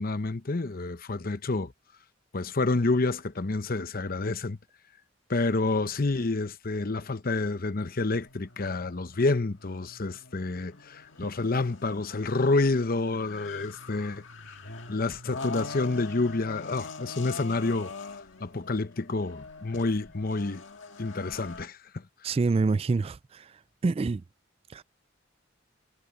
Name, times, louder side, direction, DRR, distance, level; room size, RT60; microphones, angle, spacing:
voice 1, 0.0-1.7 2.3-4.6 5.3-14.2 14.9-17.9 18.4-20.6 21.0-22.0, left 3 dB, 50° left, 0.8 m, -28 dB
sound 1, 8.1-21.6, left 4 dB, 80° left, 1.8 m, -43 dB
voice 2, 22.2-23.5 23.8-24.2 24.7-24.8, right 3 dB, 30° right, 0.3 m, -26 dB
head